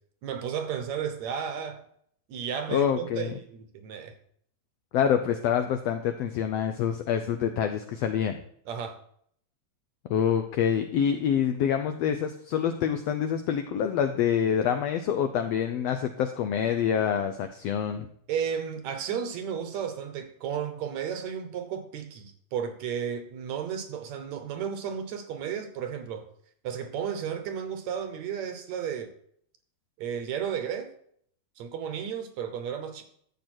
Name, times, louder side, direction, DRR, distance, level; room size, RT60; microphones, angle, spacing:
voice 1, 0.2-1.8 2.3-4.1 8.7-9.0 18.3-26.3 26.6-29.1 30.0-30.9 31.6-33.0, right 8 dB, 70° right, 2.2 m, -33 dB
voice 2, 2.7-3.4 4.9-8.4 10.1-18.1, left 8 dB, 80° left, 1.4 m, -26 dB
12.5 x 7.9 x 4.4 m
omnidirectional pair, 3.6 m